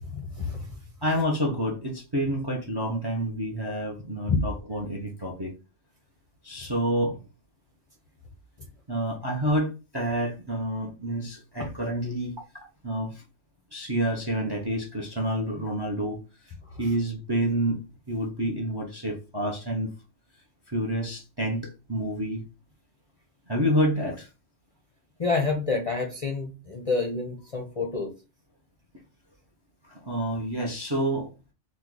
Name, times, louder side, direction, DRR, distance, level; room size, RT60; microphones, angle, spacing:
voice 1, 0.1-0.8 4.3-4.4 16.7-16.8 25.2-28.1, left 4 dB, 40° left, 0 dB, 0.5 m, -28 dB
voice 2, 1.0-5.5 6.4-7.2 8.9-13.2 13.7-16.2 16.8-17.8 18.1-19.9 20.7-22.4 23.5-24.3 29.8-31.3, right 1 dB, 30° right, 1 dB, 0.5 m, -28 dB
3.0 x 2.3 x 3.7 m, 0.30 s
omnidirectional pair, 1.2 m